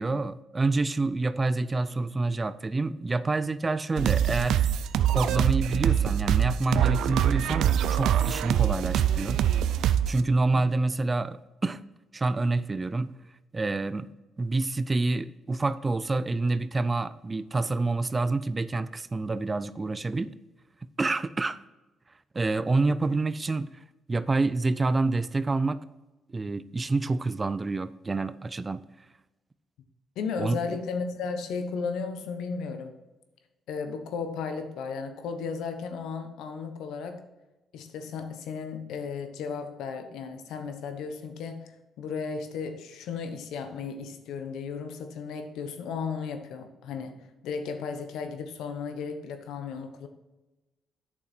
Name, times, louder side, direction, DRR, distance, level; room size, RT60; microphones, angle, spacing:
voice 1, 0.0-4.6 5.1-9.4 10.1-11.8 12.1-13.1 13.5-14.1 14.4-20.3 21.0-21.6 22.3-23.7 24.1-25.8 26.3-28.8 30.4-30.6, right 3 dB, 25° right, 0.4 m, -27 dB
sound 1, 4.0-10.2, right 10 dB, 80° right, 0.4 m, -24 dB
voice 2, 30.2-33.0 33.7-37.2 37.7-50.1, left 5 dB, 85° left, 1.0 m, -35 dB
8.5 x 6.6 x 4.3 m
cardioid pair, 90°, 0 cm